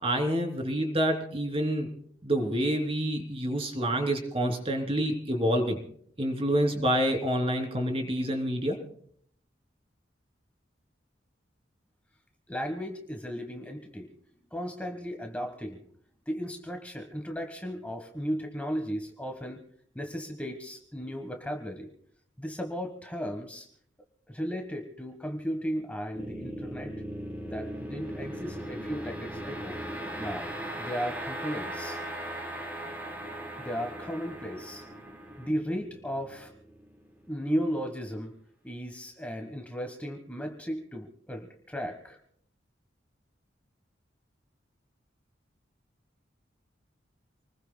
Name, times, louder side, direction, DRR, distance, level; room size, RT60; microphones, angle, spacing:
voice 1, 0.0-1.9 2.2-5.8 6.2-8.8, equal, 30° right, 4 dB, 3.1 m, -27 dB
voice 2, 12.5-14.1 14.5-15.8 16.3-19.6 19.9-21.9 22.4-23.7 24.3-26.9 27.5-29.8 30.2-30.5 30.8-32.0 33.6-34.8 35.4-36.5 37.3-38.4 38.6-42.2, equal, 10° left, 4 dB, 1.3 m, -35 dB
sound 1, 26.1-37.3, right 1 dB, 10° right, 3.5 m, -38 dB
28.0 x 20.5 x 2.2 m, 0.64 s
head